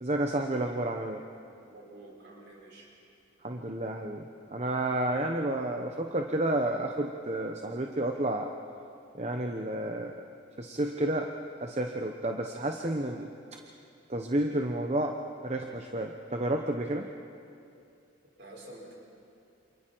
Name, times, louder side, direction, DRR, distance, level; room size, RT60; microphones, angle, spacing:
voice 1, 0.0-1.2 3.4-8.5 9.1-10.2 10.6-11.3 11.6-13.6 14.1-15.2 15.4-17.1, right 1 dB, 30° right, 3 dB, 0.8 m, -31 dB
voice 2, 1.6-2.9 18.4-18.9, right 1 dB, 55° right, -4 dB, 6.1 m, -49 dB
28.5 x 27.5 x 4.6 m, 2.5 s
head